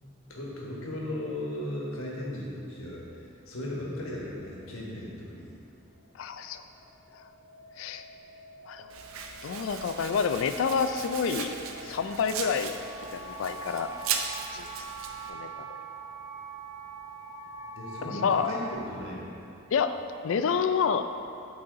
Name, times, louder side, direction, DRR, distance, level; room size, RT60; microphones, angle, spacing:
voice 1, 0.0-5.5 17.8-19.3, left 1 dB, 90° left, -4 dB, 1.4 m, -37 dB
sound 1, 5.9-18.7, right 3 dB, 35° right, 1.3 m, -44 dB
voice 2, 6.1-6.6 7.8-8.0 8.6-8.9 9.4-11.5 11.8-12.7 13.1-13.9 14.5-14.7 15.3-15.7 18.0-18.5 19.7-19.9 20.2-21.1, left 6 dB, 75° left, 9 dB, 0.3 m, -28 dB
Domestic sounds home sounds, 8.9-15.3, right 6 dB, 90° right, 0.5 m, -38 dB
8.5 x 4.2 x 3.8 m, 2.7 s
head